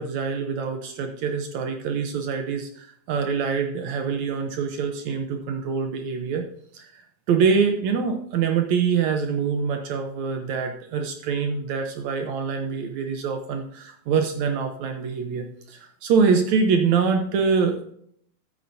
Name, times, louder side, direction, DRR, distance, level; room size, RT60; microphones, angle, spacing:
voice 1, 0.0-6.5 6.7-7.0 7.3-17.8, right 5 dB, 75° right, 5 dB, 1.7 m, -25 dB
13.5 x 8.5 x 2.7 m, 0.66 s
omnidirectional pair, 4.3 m